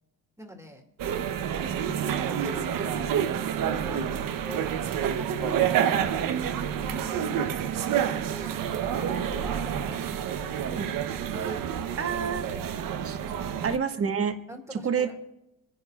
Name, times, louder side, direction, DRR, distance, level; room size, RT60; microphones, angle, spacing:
voice 1, 0.4-0.8 1.5-3.3 3.6-4.8 5.2-10.9 11.2-11.6 12.5-12.8 14.5-15.2, right 1 dB, 10° right, 2 dB, 2.2 m, -43 dB
sound 1, 1.0-13.8, right 9 dB, 60° right, 0.9 m, -28 dB
voice 2, 12.0-12.5 13.0-13.2 13.6-14.4 14.7-15.2, right 6 dB, 40° right, 6 dB, 1.3 m, -28 dB
26.5 x 10.5 x 2.4 m, 0.89 s
cardioid pair, 90°, 37 cm